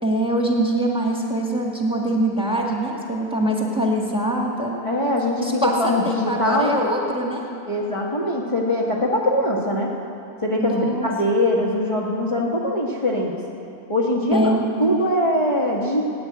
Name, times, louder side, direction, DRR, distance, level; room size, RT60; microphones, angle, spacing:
voice 1, 0.0-4.7 5.4-7.4 10.6-11.1 14.3-14.6, right 1 dB, 5° right, -1 dB, 1.7 m, -23 dB
voice 2, 4.8-6.8 7.7-9.9 10.4-13.3 13.9-16.1, left 1 dB, 20° left, -5 dB, 1.2 m, -22 dB
17.0 x 9.8 x 8.4 m, 2.8 s
omnidirectional pair, 1.8 m